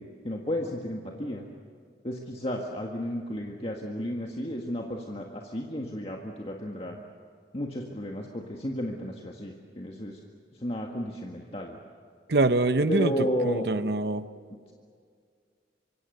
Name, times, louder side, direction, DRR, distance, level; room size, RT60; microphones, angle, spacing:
voice 1, 0.0-1.5 2.0-7.0 7.5-10.2 10.6-11.8 12.9-13.6, equal, 35° left, 0 dB, 1.8 m, -33 dB
voice 2, 12.3-13.1 13.4-14.2, right 2 dB, 65° right, 12 dB, 0.8 m, -24 dB
25.5 x 25.0 x 6.7 m, 2.1 s
head